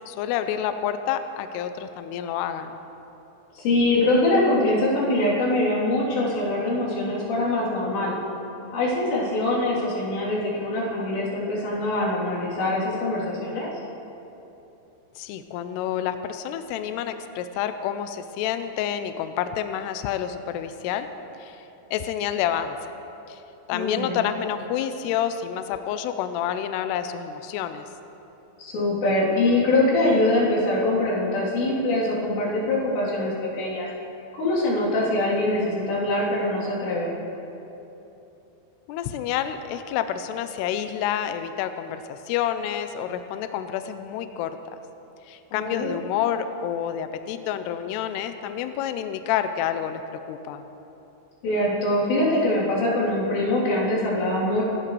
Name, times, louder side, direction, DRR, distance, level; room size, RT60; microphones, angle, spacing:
voice 1, 0.1-2.8 15.2-21.1 21.4-21.6 21.9-22.8 23.3-23.4 23.7-27.9 38.9-44.6 45.3-50.0 50.3-50.6, left 10 dB, 90° left, 9 dB, 2.4 m, -28 dB
voice 2, 3.6-8.2 8.7-13.7 23.7-24.2 28.6-33.9 34.4-37.1 45.5-45.9 51.4-54.6, left 1 dB, 65° left, -8 dB, 5.5 m, -23 dB
25.5 x 13.5 x 3.3 m, 3.0 s
omnidirectional pair, 5.4 m